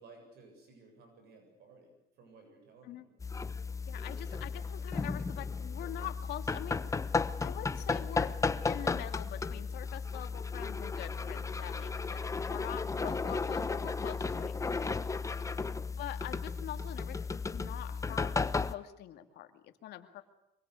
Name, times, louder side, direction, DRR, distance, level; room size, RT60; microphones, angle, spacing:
voice 1, 0.0-3.1 11.1-11.5 15.4-15.9, right 3 dB, 75° right, 4 dB, 7.5 m, -58 dB
sound 1, 3.2-18.7, left 4 dB, 20° left, 1.0 m, -34 dB
voice 2, 3.9-7.1 7.4-15.0 16.0-20.2, left 12 dB, 80° left, 7 dB, 2.3 m, -45 dB
25.0 x 23.5 x 8.4 m, 0.84 s
cardioid pair, 110°, 17 cm